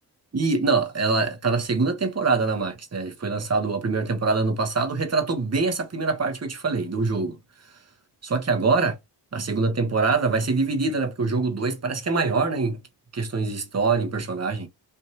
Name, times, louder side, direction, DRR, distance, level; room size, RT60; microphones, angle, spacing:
voice 1, 0.3-7.4 8.2-8.9 9.3-12.8 13.1-14.7, right 4 dB, 40° right, 1.1 m, -24 dB
3.5 x 2.6 x 2.8 m
cardioid pair, 55°, 41 cm